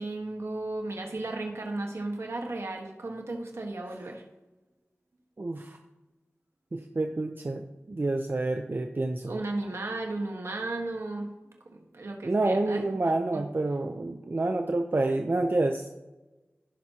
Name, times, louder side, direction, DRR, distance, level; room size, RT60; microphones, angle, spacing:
voice 1, 0.0-4.2 9.3-12.9 13.3-13.4, right 2 dB, 80° right, 1 dB, 1.4 m, -35 dB
voice 2, 5.4-5.8 6.7-9.4 12.2-15.9, right 2 dB, 50° right, 4 dB, 0.6 m, -28 dB
17.0 x 5.9 x 2.9 m, 1.1 s
wide cardioid pair, 60°, 5 cm